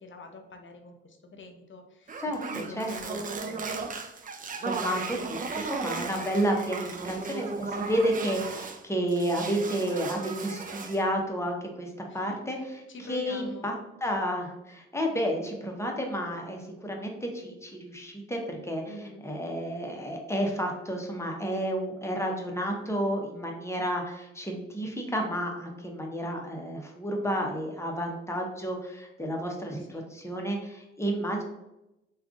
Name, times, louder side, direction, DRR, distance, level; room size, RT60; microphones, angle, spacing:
voice 1, 0.0-3.6 12.1-12.4 12.9-13.7 18.9-19.2 29.9-30.1, left 2 dB, 40° left, 4 dB, 0.7 m, -45 dB
sound 1, 2.1-8.8 9.1-11.0, right 4 dB, 30° right, 0.4 m, -36 dB
voice 2, 2.2-3.2 4.6-12.6 13.1-13.7 14.0-31.4, equal, 10° left, 1 dB, 0.8 m, -31 dB
3.5 x 2.4 x 2.4 m, 0.93 s
hypercardioid pair, 40°, 30 cm